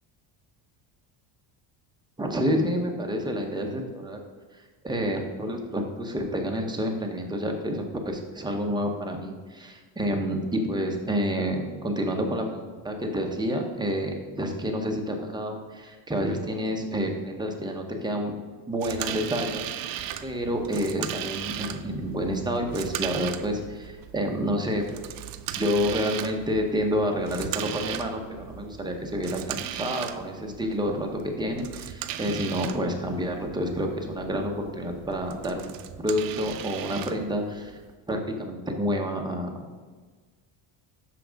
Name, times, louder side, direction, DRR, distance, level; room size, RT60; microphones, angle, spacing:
voice 1, 2.2-4.2 4.8-18.4 18.7-24.8 25.6-35.7 36.0-37.8 38.1-39.6, equal, 10° right, 2 dB, 0.7 m, -29 dB
sound 1, 18.8-37.9, right 11 dB, 45° right, 0.4 m, -38 dB
6.1 x 5.8 x 5.0 m, 1.4 s
cardioid pair, 145°, 49 cm